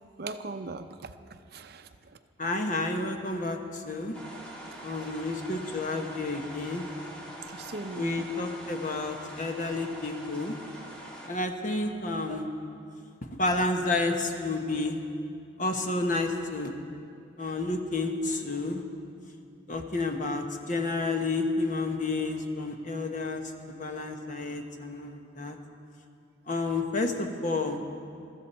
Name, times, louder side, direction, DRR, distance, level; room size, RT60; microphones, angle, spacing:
voice 1, 0.2-1.1 1.5-1.9 4.8-4.9 7.5-8.3 12.3-12.4, right 3 dB, 55° right, 9 dB, 0.6 m, -38 dB
voice 2, 2.4-4.2 4.8-6.8 7.9-10.5 11.3-12.5 13.4-15.0 15.6-16.7 17.4-18.8 19.7-23.4 23.8-25.6 26.5-27.8, left 2 dB, 45° left, 4 dB, 1.2 m, -30 dB
sound 1, 4.1-11.3, right 1 dB, 5° left, 2.4 m, -44 dB
23.0 x 13.5 x 4.4 m, 2.4 s
head